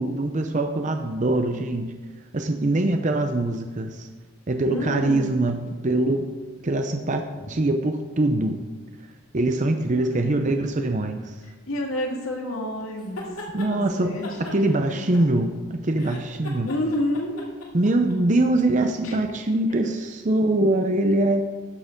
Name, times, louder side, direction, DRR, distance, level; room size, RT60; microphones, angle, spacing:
voice 1, 0.0-1.9 2.3-4.1 4.5-6.3 6.6-8.6 9.3-11.3 13.5-16.7 17.7-21.4, right 2 dB, 35° right, 5 dB, 0.6 m, -23 dB
voice 2, 4.7-5.3 9.9-10.4 11.7-13.2 13.7-15.0 16.6-17.4 19.0-19.2, left 1 dB, 70° left, 0 dB, 2.0 m, -29 dB
sound 1, 13.0-13.7 14.2-15.6 15.9-18.2, left 1 dB, 90° left, 2.4 m, -38 dB
13.0 x 6.7 x 5.1 m, 1.3 s
head